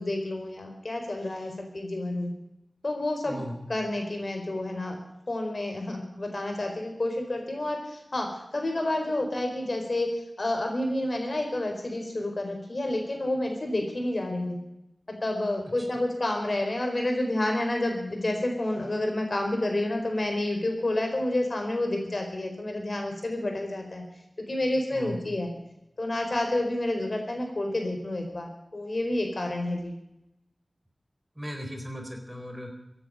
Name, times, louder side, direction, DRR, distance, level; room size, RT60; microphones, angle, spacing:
voice 1, 0.0-2.3 2.8-3.4 3.7-5.0 5.3-8.3 8.5-10.1 10.4-14.6 15.2-24.0 24.4-25.5 26.0-29.9, left 1 dB, 60° left, 3 dB, 4.6 m, -29 dB
voice 2, 3.2-3.6 15.6-15.7 24.9-25.2 31.3-32.7, equal, 10° right, 3 dB, 4.4 m, -37 dB
15.5 x 10.0 x 9.1 m, 0.85 s
wide cardioid pair, 55°, 0 cm